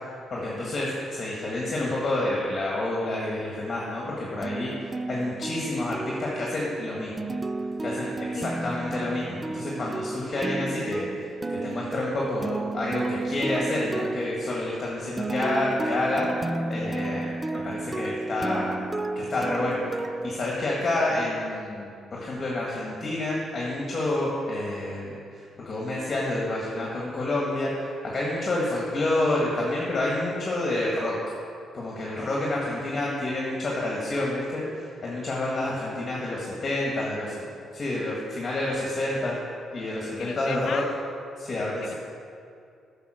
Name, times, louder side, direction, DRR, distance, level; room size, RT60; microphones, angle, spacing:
voice 1, 0.3-7.3 7.8-11.1 11.5-16.3 16.7-18.8 19.1-31.2 31.7-37.3 37.7-39.4 39.7-40.8 41.4-41.9, left 2 dB, 40° left, -4 dB, 1.6 m, -29 dB
sound 1, 4.4-21.1, right 2 dB, 20° right, 0.3 m, -32 dB
voice 2, 40.2-40.9 41.8-41.9, left 7 dB, 60° left, 8 dB, 0.6 m, -36 dB
9.3 x 5.6 x 6.3 m, 2.4 s
cardioid pair, 90°, 0 cm